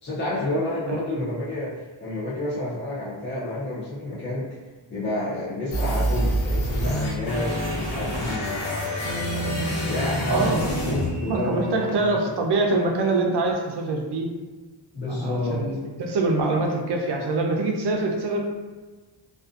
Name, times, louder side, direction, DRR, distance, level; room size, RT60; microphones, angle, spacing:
voice 1, 0.0-4.6 4.9-12.2 14.9-15.7, left 1 dB, 25° left, -8 dB, 0.4 m, -30 dB
voice 2, 0.9-1.2 10.3-10.6 11.3-14.3 15.1-18.4, right 2 dB, 60° right, 1 dB, 0.5 m, -24 dB
sound 1, 5.7-11.7, equal, 85° left, 0.9 m, -26 dB
2.4 x 2.4 x 2.4 m, 1.3 s
wide cardioid pair, 170°, 47 cm